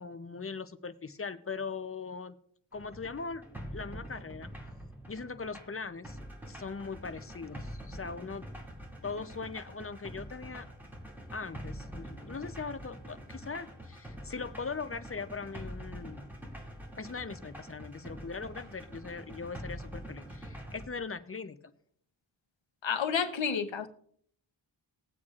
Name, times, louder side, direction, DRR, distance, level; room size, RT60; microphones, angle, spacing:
voice 1, 0.0-2.3 2.7-3.5 3.7-4.5 5.1-6.2 6.5-8.5 9.0-10.7 11.3-16.3 17.0-21.7, left 4 dB, 30° left, 11 dB, 0.6 m, -40 dB
sound 1, 2.7-20.8, equal, 5° right, 2.3 m, -45 dB
voice 2, 22.8-23.9, left 6 dB, 75° left, 9 dB, 0.9 m, -30 dB
20.5 x 8.0 x 2.4 m, 0.65 s
wide cardioid pair, 105°, 46 cm